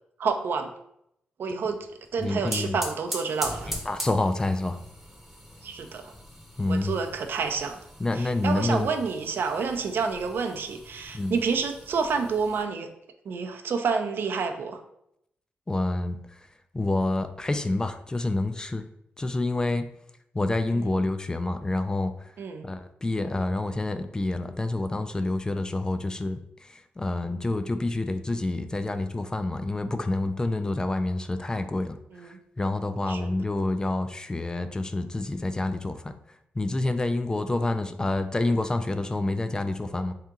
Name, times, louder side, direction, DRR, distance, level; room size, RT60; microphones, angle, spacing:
voice 1, 0.2-0.7 1.4-1.8 2.1-3.7 5.6-6.1 6.7-7.8 8.2-12.9 13.2-14.8 20.7-21.0 22.4-22.6 32.1-32.4 33.1-33.3, right 5 dB, 70° right, 6 dB, 0.5 m, -29 dB
sound 1, 2.0-12.6, equal, 5° right, 0.7 m, -41 dB
voice 2, 2.2-2.8 3.9-4.8 6.6-7.0 8.0-8.9 11.1-11.4 15.7-16.5 16.7-18.9 19.2-19.9 20.3-22.3 22.6-40.1, left 2 dB, 20° left, 9 dB, 0.3 m, -28 dB
3.6 x 2.8 x 3.6 m, 0.77 s
cardioid pair, 90°, 4 cm